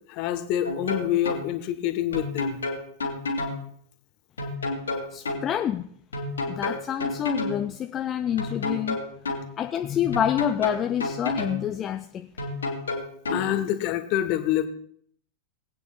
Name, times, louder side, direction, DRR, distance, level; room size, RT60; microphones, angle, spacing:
voice 1, 0.1-2.6 13.3-14.7, left 12 dB, 45° left, 10 dB, 1.0 m, -26 dB
sound 1, 0.6-1.4 2.1-3.6 4.4-5.4 6.1-7.6 8.4-9.4 10.1-11.6 12.4-13.4, left 2 dB, 75° left, 2.3 m, -29 dB
voice 2, 5.1-5.9 6.5-9.0 9.6-12.3, left 10 dB, 25° left, 8 dB, 0.5 m, -27 dB
21.0 x 8.9 x 2.2 m, 0.62 s
figure-of-eight pair, 90°, 0 cm